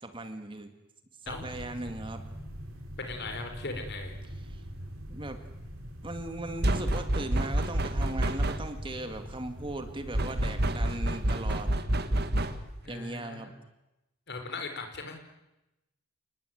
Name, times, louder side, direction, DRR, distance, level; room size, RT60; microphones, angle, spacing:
voice 1, 0.0-0.7 1.2-2.2 4.4-4.6 5.1-5.4 6.0-11.8 12.9-13.5, right 2 dB, 20° right, 7 dB, 2.1 m, -38 dB
crossing tracks, 1.3-11.7, equal, 70° right, 4.8 m, -43 dB
voice 2, 3.0-4.2 12.8-13.5 14.3-15.2, left 3 dB, 50° left, 5 dB, 4.7 m, -38 dB
sound 1, 6.6-8.9 10.1-12.8, right 1 dB, 45° right, 1.8 m, -28 dB
29.5 x 20.0 x 9.3 m, 0.98 s
head